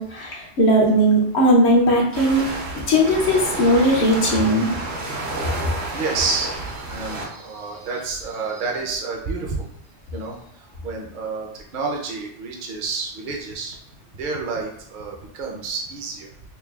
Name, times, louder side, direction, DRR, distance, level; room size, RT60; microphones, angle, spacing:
voice 1, 0.0-2.5 2.9-4.7, equal, 70° left, -3 dB, 1.0 m, -18 dB
sound 1, 2.1-7.3, right 2 dB, 70° right, 1.1 m, -30 dB
voice 2, 4.8-9.7 10.1-10.4 10.8-13.8 14.1-16.3, right 4 dB, 50° right, 0 dB, 0.7 m, -30 dB
5.6 x 2.3 x 2.3 m, 0.73 s
omnidirectional pair, 1.2 m